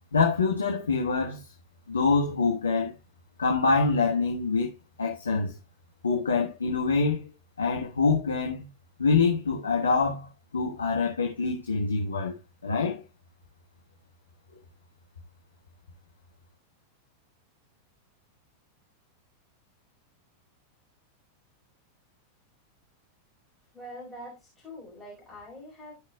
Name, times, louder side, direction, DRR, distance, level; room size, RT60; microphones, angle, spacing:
voice 1, 0.1-1.5 1.9-2.9 3.4-4.7 5.0-5.5 6.0-7.3 7.6-8.6 9.0-10.3 10.5-12.3 12.6-13.0, left 4 dB, 75° left, 1.4 m, -25 dB
voice 2, 23.7-25.9, equal, 5° left, 4.5 m, -44 dB
16.0 x 5.6 x 2.3 m
figure-of-eight pair, 90°, 0 cm